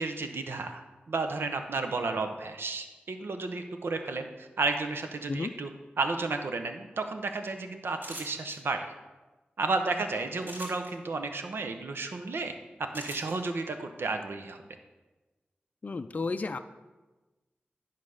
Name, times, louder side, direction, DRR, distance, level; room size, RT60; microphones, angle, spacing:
voice 1, 0.0-5.7 6.0-8.9 9.6-14.6, right 3 dB, 85° right, 6 dB, 0.8 m, -32 dB
sound 1, 8.0-8.6 10.4-10.9 12.9-13.3, right 1 dB, 65° right, 3.1 m, -41 dB
voice 2, 15.8-16.6, left 3 dB, 45° left, 9 dB, 0.4 m, -32 dB
10.5 x 4.1 x 6.4 m, 1.2 s
wide cardioid pair, 110°, 4 cm